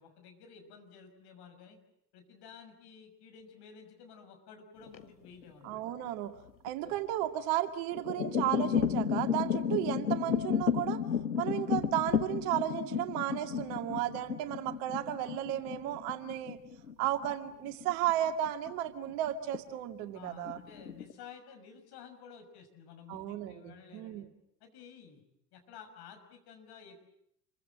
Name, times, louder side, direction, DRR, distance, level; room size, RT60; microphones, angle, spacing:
voice 1, 0.0-1.8 2.1-5.8 6.8-7.0 11.3-11.4 17.0-17.2 20.1-24.2 24.6-25.2 25.5-27.1, left 6 dB, 50° left, 6 dB, 6.4 m, -53 dB
sound 1, 4.8-5.9 6.5-6.9 7.7-18.7 19.1-19.6 19.9-20.0 20.5-21.1, left 7 dB, 85° left, 1.3 m, -33 dB
voice 2, 5.6-6.4 6.6-11.0 11.4-16.6 17.0-20.6 23.1-24.2, right 13 dB, 55° right, 7 dB, 2.3 m, -34 dB
29.0 x 23.5 x 7.7 m, 0.79 s
figure-of-eight pair, 75°, 50 cm